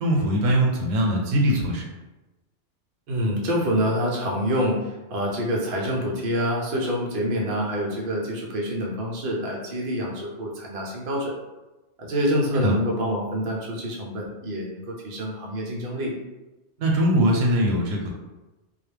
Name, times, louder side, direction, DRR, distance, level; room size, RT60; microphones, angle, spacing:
voice 1, 0.0-1.8 12.6-12.7 16.8-18.1, right 1 dB, 90° right, 0 dB, 1.0 m, -21 dB
voice 2, 3.1-11.3 12.0-16.1, equal, 55° right, -2 dB, 0.7 m, -26 dB
2.4 x 2.1 x 3.2 m, 1.1 s
omnidirectional pair, 1.3 m